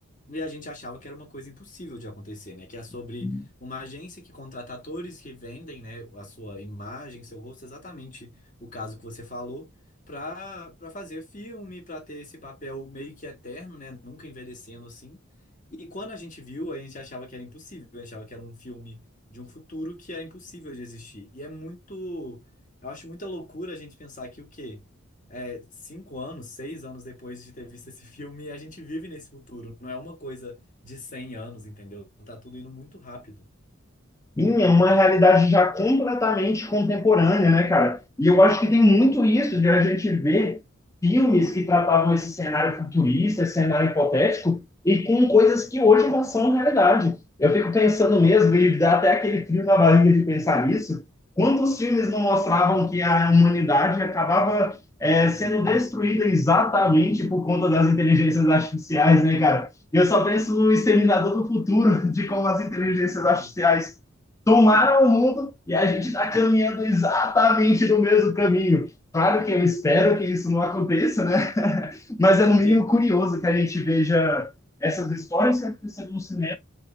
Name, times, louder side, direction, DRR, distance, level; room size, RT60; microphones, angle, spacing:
voice 1, 0.3-3.3 3.6-9.7 10.1-15.2 15.8-19.0 19.3-22.4 22.8-24.8 25.3-33.5 63.2-63.5 72.6-72.8, left 1 dB, 40° left, 1.1 m, -39 dB
voice 2, 34.4-40.6 41.0-51.0 51.4-63.9 64.5-74.5 74.8-76.6, left 2 dB, 15° left, 0.4 m, -20 dB
4.0 x 3.2 x 2.9 m
head